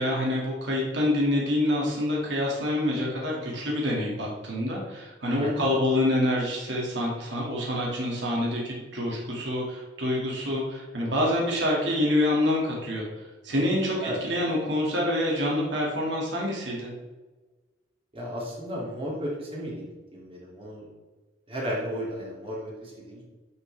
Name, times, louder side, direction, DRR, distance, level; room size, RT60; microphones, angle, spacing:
voice 1, 0.0-13.1 13.4-16.9, left 1 dB, 65° right, -3 dB, 2.2 m, -26 dB
voice 2, 18.1-19.9 20.1-20.9 21.5-23.2, equal, 30° right, -5 dB, 2.7 m, -34 dB
10.5 x 6.3 x 3.4 m, 1.3 s
head